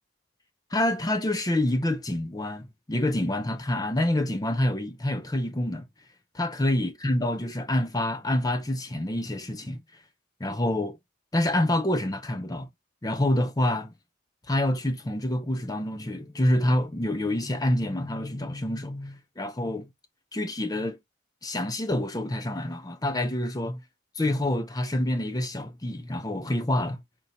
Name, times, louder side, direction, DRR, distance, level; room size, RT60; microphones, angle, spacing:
voice 1, 0.7-5.8 6.3-9.8 10.4-11.0 11.3-12.7 13.0-13.9 14.5-19.9 20.3-21.0 21.4-23.8 24.2-27.0, left 1 dB, 20° left, 0.6 m, -27 dB
4.5 x 4.0 x 2.7 m
head